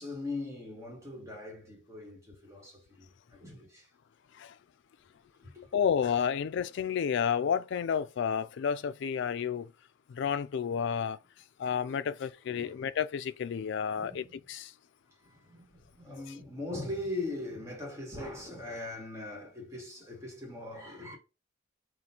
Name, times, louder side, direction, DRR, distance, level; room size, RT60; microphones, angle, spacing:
voice 1, 0.0-3.9 5.4-5.7 12.5-12.9 13.8-14.4 15.2-21.2, left 2 dB, 15° right, 1.5 m, -41 dB
voice 2, 5.7-9.7 10.1-11.2 11.6-14.7, left 7 dB, 60° left, 0.3 m, -31 dB
3.9 x 2.5 x 4.3 m
head